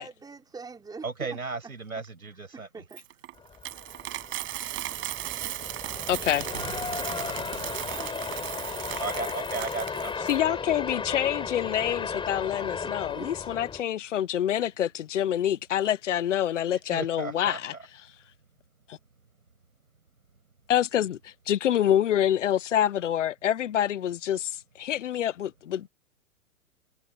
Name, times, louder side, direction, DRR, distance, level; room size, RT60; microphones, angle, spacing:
voice 1, 0.0-1.7 2.5-3.2 7.7-8.3 13.1-13.5, right 4 dB, 10° right, 4.5 m, -45 dB
voice 2, 1.0-2.7 9.0-10.3 16.7-17.6, right 4 dB, 85° right, 7.0 m, -35 dB
Coin (dropping), 2.9-10.4, right 16 dB, 30° right, 7.1 m, -36 dB
sound 1, 3.4-13.8, left 5 dB, 10° left, 5.3 m, -35 dB
voice 3, 6.1-6.5 10.3-17.7 18.9-19.0 20.7-25.9, left 11 dB, 60° left, 1.4 m, -26 dB
figure-of-eight pair, 115°, 42 cm